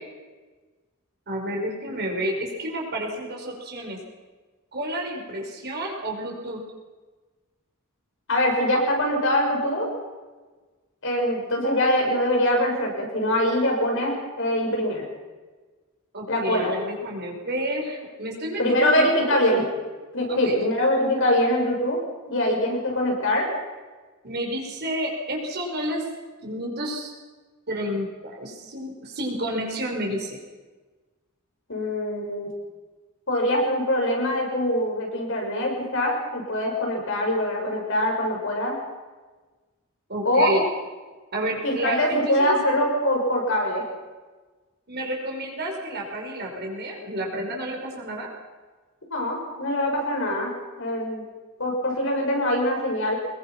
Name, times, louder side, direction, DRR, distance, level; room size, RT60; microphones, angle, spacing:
voice 1, 1.3-4.0 4.7-6.6 16.1-19.4 20.3-20.6 24.2-26.0 26.4-27.1 27.7-30.4 40.1-40.6 41.3-42.6 44.9-48.3, right 1 dB, 50° right, 0 dB, 5.2 m, -30 dB
voice 2, 8.3-9.9 11.0-15.0 16.3-16.7 18.6-19.6 20.1-22.0 22.3-23.5 31.7-32.5 33.3-38.8 40.2-40.5 41.6-43.8 49.1-50.5 50.8-51.2 51.6-53.1, left 1 dB, 65° left, 0 dB, 6.8 m, -23 dB
24.5 x 21.5 x 6.0 m, 1.3 s
head